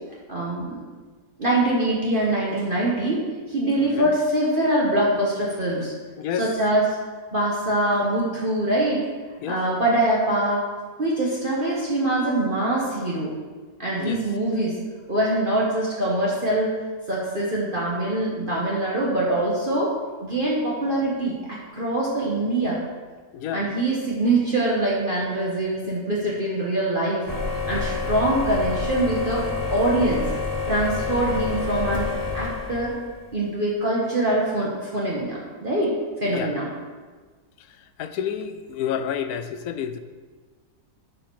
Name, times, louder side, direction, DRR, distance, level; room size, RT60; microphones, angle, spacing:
voice 1, 0.3-0.8 1.4-3.2 3.5-5.9 6.3-7.0 7.3-9.0 9.5-10.6 11.0-13.3 13.8-14.7 15.1-16.7 17.1-19.9 20.2-22.8 23.5-27.3 27.7-30.2 30.7-32.1 32.3-33.0 33.3-35.9 36.2-36.7, right 1 dB, 35° right, -5 dB, 1.4 m, -23 dB
voice 2, 9.4-9.8 14.0-14.2 23.3-23.7 36.3-36.5 38.0-40.0, left 8 dB, 70° left, 10 dB, 1.1 m, -29 dB
sound 1, 27.3-33.2, left 4 dB, 15° left, 0.7 m, -28 dB
11.5 x 4.9 x 4.7 m, 1.4 s
omnidirectional pair, 1.7 m